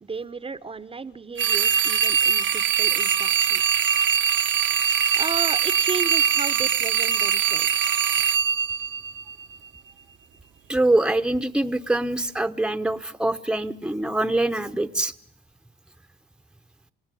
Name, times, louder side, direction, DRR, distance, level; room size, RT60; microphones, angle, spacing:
voice 1, 0.0-3.6 5.1-7.9, right 4 dB, 30° right, 14 dB, 0.9 m, -34 dB
sound 1, 1.4-9.6, right 9 dB, 70° right, 1.1 m, -22 dB
voice 2, 10.7-15.1, right 2 dB, 5° right, 11 dB, 1.0 m, -24 dB
29.0 x 17.0 x 10.0 m, 0.79 s
cardioid pair, 90°, 20 cm